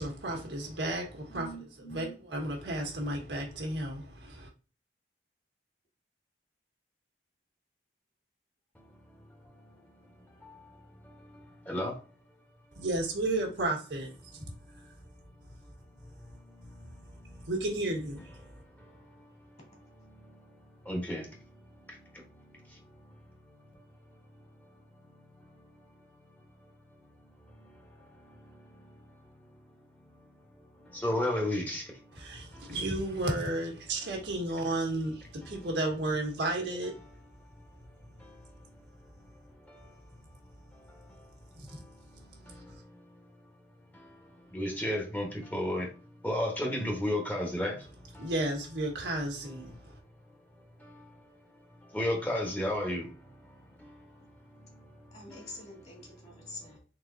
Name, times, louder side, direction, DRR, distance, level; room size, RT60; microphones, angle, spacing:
voice 1, 0.0-1.5 1.9-4.5 12.7-14.4 17.4-18.4 32.1-37.0 41.5-41.8 42.7-42.8 48.2-50.0, right 2 dB, 80° right, 1.4 m, -33 dB
voice 2, 1.3-2.1 55.1-56.8, equal, 35° left, 2.0 m, -46 dB
voice 3, 8.7-12.0 14.4-14.9 15.3-17.5 18.4-30.3 30.6-32.8 35.4-35.8 36.0-36.2 37.9-40.1 40.7-43.5 43.9-47.9 48.1-48.3 50.6-55.6 56.3-56.8, left 1 dB, 10° left, 1.1 m, -39 dB
4.0 x 3.8 x 2.6 m
head